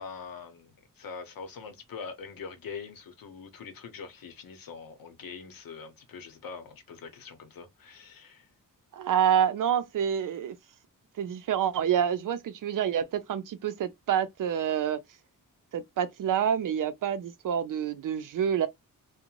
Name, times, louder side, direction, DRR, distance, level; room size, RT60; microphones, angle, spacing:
voice 1, 0.0-8.5, left 5 dB, 80° left, 0.8 m, -43 dB
voice 2, 8.9-10.6 11.2-15.0 15.7-18.7, right 9 dB, 65° right, 0.5 m, -27 dB
2.5 x 2.1 x 2.9 m
wide cardioid pair, 140°, 35 cm